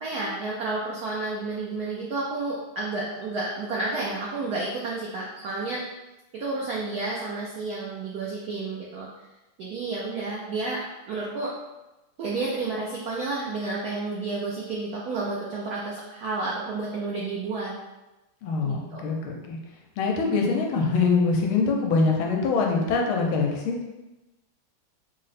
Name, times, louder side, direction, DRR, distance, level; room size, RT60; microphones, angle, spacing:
voice 1, 0.0-5.8 6.3-9.1 9.6-11.5 12.2-17.7 18.6-19.0, right 3 dB, 85° right, -4 dB, 0.8 m, -31 dB
voice 2, 18.4-19.6 20.0-23.8, left 4 dB, 85° left, 1 dB, 1.5 m, -24 dB
3.7 x 2.0 x 4.0 m, 1.0 s
omnidirectional pair, 2.3 m